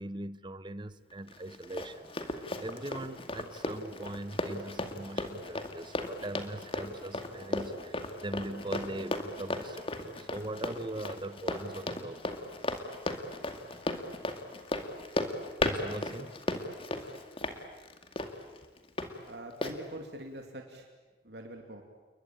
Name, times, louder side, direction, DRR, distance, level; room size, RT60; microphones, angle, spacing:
voice 1, 0.0-12.4 15.6-16.4, right 1 dB, 25° right, 0.9 m, -41 dB
Run, 1.3-19.1 19.6-19.8, left 2 dB, 30° left, 2.2 m, -36 dB
voice 2, 19.3-20.9 21.2-21.8, right 1 dB, 65° right, 2.8 m, -44 dB
29.5 x 22.0 x 8.9 m
head